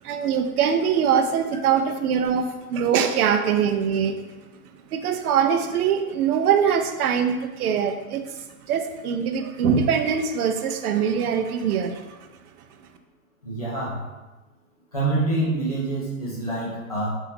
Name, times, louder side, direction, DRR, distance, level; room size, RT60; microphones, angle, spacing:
voice 1, 0.0-4.2 4.9-12.3, right 7 dB, 90° right, 7 dB, 0.5 m, -23 dB
voice 2, 13.4-14.1 14.9-17.2, right 2 dB, 30° left, -8 dB, 0.4 m, -26 dB
2.8 x 2.6 x 3.4 m, 1.1 s
hypercardioid pair, 180°, 43 cm